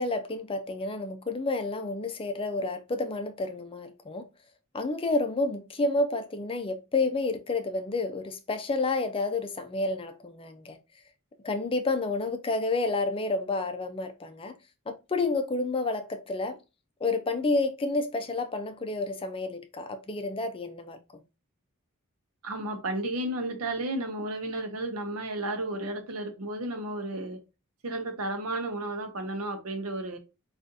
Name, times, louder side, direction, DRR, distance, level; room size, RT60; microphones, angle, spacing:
voice 1, 0.0-4.2 4.7-10.8 11.4-14.5 14.9-16.6 17.0-21.0, left 3 dB, 25° left, 0.5 m, -30 dB
voice 2, 22.4-27.4 27.8-30.2, right 1 dB, 80° right, 0.7 m, -33 dB
3.7 x 2.4 x 2.6 m
head